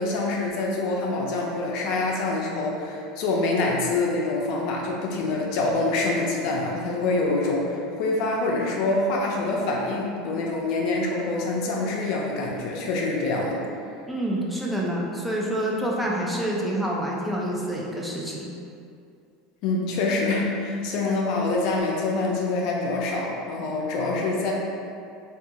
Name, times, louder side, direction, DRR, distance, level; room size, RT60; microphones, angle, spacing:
voice 1, 0.0-13.6 19.6-24.5, left 2 dB, 65° left, -2 dB, 0.4 m, -25 dB
voice 2, 14.1-18.5, right 1 dB, 5° right, -4 dB, 0.4 m, -27 dB
2.7 x 2.3 x 2.6 m, 2.5 s
supercardioid pair, 110°, 0 cm